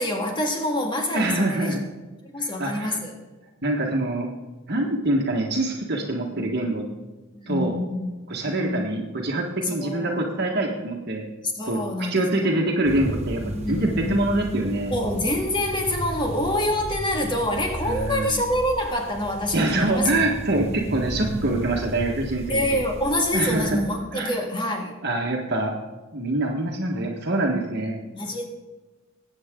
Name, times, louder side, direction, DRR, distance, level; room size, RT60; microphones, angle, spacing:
voice 1, 0.0-1.8 2.3-3.1 7.3-8.1 8.5-8.9 9.6-10.3 11.5-12.5 13.4-14.2 14.9-20.2 22.5-25.0 28.1-28.5, left 1 dB, 25° left, 2 dB, 2.1 m, -26 dB
voice 2, 1.1-1.8 2.4-3.0 3.6-4.3 4.7-6.8 7.5-7.8 8.3-11.3 11.7-13.4 13.7-14.9 17.8-18.4 19.5-22.7 23.3-23.8 24.1-24.3 25.0-25.7 26.1-27.9, right 2 dB, 55° right, 0 dB, 1.5 m, -25 dB
sound 1, 12.8-23.8, right 1 dB, 30° right, 1.2 m, -34 dB
20.5 x 8.7 x 3.8 m, 1.2 s
head